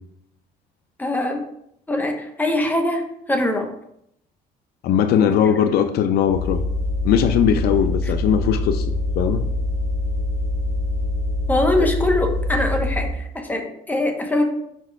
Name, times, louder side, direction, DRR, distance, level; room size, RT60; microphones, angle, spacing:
voice 1, 1.0-1.4 1.9-3.0 3.3-3.7 5.2-5.7 8.0-8.1 11.5-14.4, left 1 dB, 10° left, 3 dB, 1.1 m, -23 dB
voice 2, 4.8-6.6 7.0-8.9 9.2-9.5, left 8 dB, 70° left, 8 dB, 0.5 m, -19 dB
sound 1, 6.3-13.2, left 2 dB, 45° left, 0.9 m, -24 dB
5.3 x 4.5 x 4.7 m, 0.74 s
cardioid pair, 110°, 17 cm